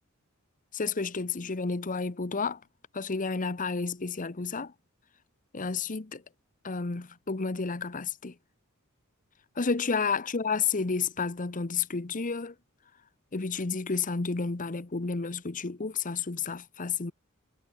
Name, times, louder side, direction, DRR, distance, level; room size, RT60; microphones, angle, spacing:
voice 1, 0.7-2.6 2.9-4.7 5.5-6.2 6.6-8.3 9.6-12.5 13.3-17.1, left 4 dB, 40° left, 0.9 m, -31 dB
head